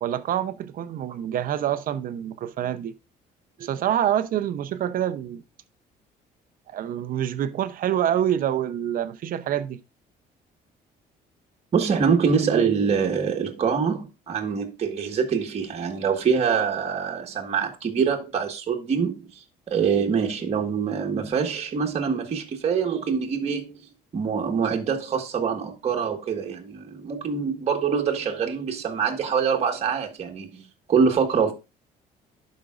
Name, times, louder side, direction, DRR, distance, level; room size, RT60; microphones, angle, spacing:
voice 1, 0.0-2.9 3.6-5.4 6.7-9.8, right 10 dB, 55° right, 0.7 m, -26 dB
voice 2, 11.7-19.2 19.7-23.8 24.1-31.5, right 6 dB, 40° right, 1.5 m, -24 dB
12.0 x 5.2 x 2.5 m
cardioid pair, 110°, 17 cm